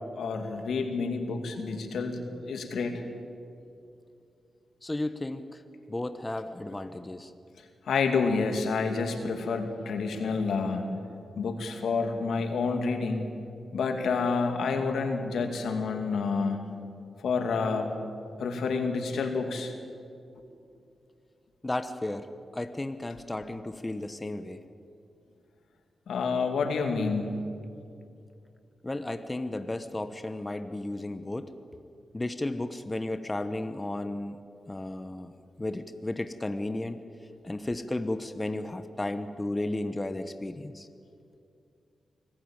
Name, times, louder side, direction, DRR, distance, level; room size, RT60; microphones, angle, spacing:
voice 1, 0.2-3.0 7.9-10.9 11.4-13.3 13.7-16.6 17.2-18.0 18.4-19.7 26.1-27.4, left 4 dB, 85° left, 5 dB, 2.4 m, -29 dB
voice 2, 4.8-5.6 5.9-7.3 21.6-22.3 22.5-24.6 28.8-31.5 32.1-34.4 34.7-35.3 35.6-37.0 37.4-40.9, left 2 dB, 20° left, 10 dB, 1.1 m, -33 dB
24.5 x 15.0 x 8.9 m, 2.5 s
cardioid pair, 70°, 0 cm